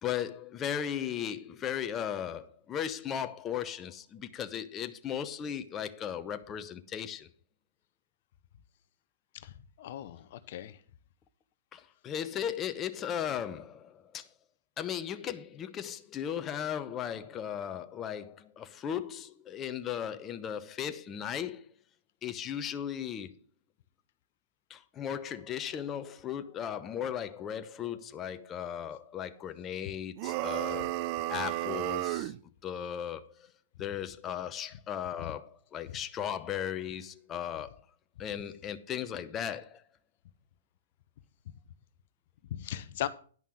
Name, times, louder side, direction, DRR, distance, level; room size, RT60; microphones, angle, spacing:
voice 1, 0.0-7.3 11.7-14.3 14.8-21.7 22.2-23.3 24.7-30.9 31.3-32.3 32.6-33.5 33.8-37.8 38.2-39.8, left 9 dB, 20° left, 0.8 m, -36 dB
voice 2, 9.8-10.8 42.5-43.1, left 12 dB, 50° left, 0.7 m, -38 dB
sound 1, 30.2-32.4, right 17 dB, 40° right, 0.4 m, -33 dB
10.5 x 5.5 x 6.3 m
hypercardioid pair, 135°, 0 cm